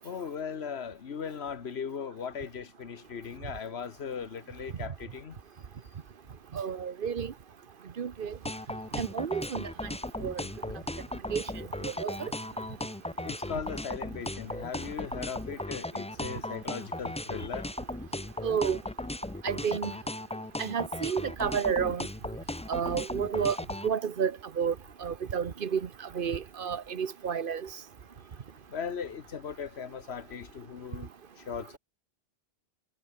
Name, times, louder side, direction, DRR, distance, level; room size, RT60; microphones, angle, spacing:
voice 1, 0.0-5.3 13.2-17.7 28.7-31.1 31.5-31.8, left 6 dB, 75° left, 1.5 m, -38 dB
voice 2, 6.5-7.3 8.0-8.3 9.0-9.7 10.2-10.4 11.3-11.4 11.8-12.3 18.4-18.8 19.4-19.9 20.6-22.1 22.7-23.6 23.8-24.3 24.6-24.7 25.0-25.8 26.1-27.6, right 7 dB, 55° right, 1.1 m, -30 dB
sound 1, 8.5-23.9, left 1 dB, 10° left, 0.5 m, -36 dB
omnidirectional pair, 1.1 m